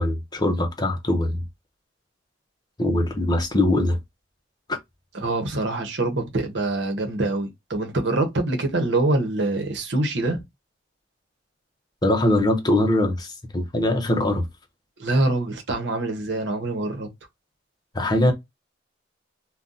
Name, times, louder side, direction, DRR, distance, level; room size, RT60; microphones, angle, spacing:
voice 1, 0.0-1.4 2.8-4.0 4.7-4.8 12.0-14.4 17.9-18.3, left 1 dB, 20° left, 0.7 m, -22 dB
voice 2, 5.1-10.4 15.0-17.1, right 2 dB, 70° right, 0.9 m, -25 dB
2.7 x 2.2 x 3.7 m
head